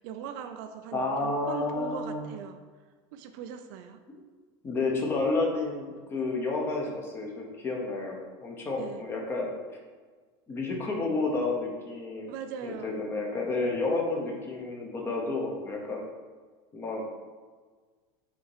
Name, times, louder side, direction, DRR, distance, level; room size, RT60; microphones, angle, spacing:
voice 1, 0.0-2.6 3.1-4.0 8.8-9.1 12.3-13.0, right 8 dB, 55° right, 8 dB, 0.5 m, -40 dB
voice 2, 0.9-2.3 4.1-4.2 4.6-9.5 10.5-12.3 12.6-16.0 16.7-17.0, left 3 dB, 20° left, 0 dB, 1.0 m, -30 dB
5.6 x 4.2 x 4.9 m, 1.5 s
supercardioid pair, 165°, 12 cm